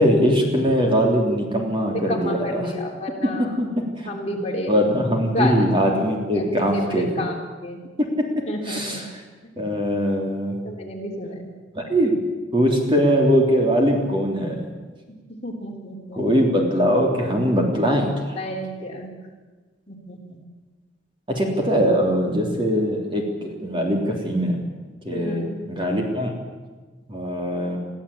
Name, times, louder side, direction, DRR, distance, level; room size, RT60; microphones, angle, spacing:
voice 1, 0.0-2.7 3.2-4.4 4.7-7.2 8.0-8.1 8.6-9.2 9.6-10.6 11.7-12.2 12.5-14.6 16.1-18.4 21.3-24.6 25.0-26.3 27.1-27.8, equal, 25° right, 1 dB, 3.3 m, -21 dB
voice 2, 1.9-3.4 4.1-4.7 5.3-5.7 6.3-7.3 7.6-7.8 8.5-9.0 10.7-11.5 15.4-16.2 17.7-17.9 18.3-19.1 19.9-20.4 25.1-25.6, left 1 dB, 35° left, 0 dB, 3.4 m, -30 dB
22.5 x 14.5 x 8.6 m, 1.3 s
head